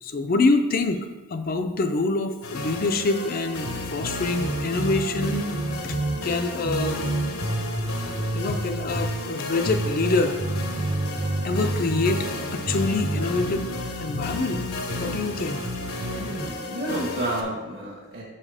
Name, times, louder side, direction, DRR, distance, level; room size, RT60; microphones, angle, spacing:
voice 1, 0.0-5.5 5.8-6.0 6.2-7.0 8.3-10.4 11.4-12.3 12.5-13.7 14.0-14.6 15.0-15.6, left 3 dB, 40° left, 7 dB, 0.4 m, -25 dB
sound 1, 2.4-17.4, left 2 dB, 75° left, 0.9 m, -34 dB
sound 2, 3.3-16.4, right 1 dB, 35° right, 0.7 m, -30 dB
voice 2, 16.1-18.2, right 1 dB, 55° right, -5 dB, 1.3 m, -30 dB
5.7 x 5.4 x 4.8 m, 1.2 s
head